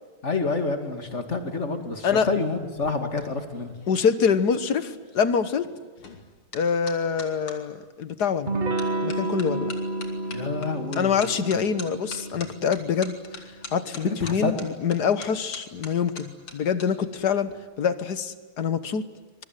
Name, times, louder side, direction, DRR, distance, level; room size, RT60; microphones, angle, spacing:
voice 1, 0.2-3.7 10.3-11.1 14.0-14.5, left 3 dB, 30° left, 6 dB, 2.6 m, -28 dB
sound 1, 2.6-7.6 8.2-8.5 8.8-16.9 17.1-17.5, left 4 dB, 75° left, 3.7 m, -43 dB
voice 2, 3.9-5.7 6.5-8.6 9.0-9.7 11.0-13.2 13.7-19.1, left 6 dB, 55° left, 12 dB, 1.6 m, -25 dB
Electric guitar / Strum, 8.5-13.8, right 2 dB, 55° right, 0.5 m, -31 dB
26.0 x 22.5 x 9.2 m, 1.4 s
omnidirectional pair, 2.4 m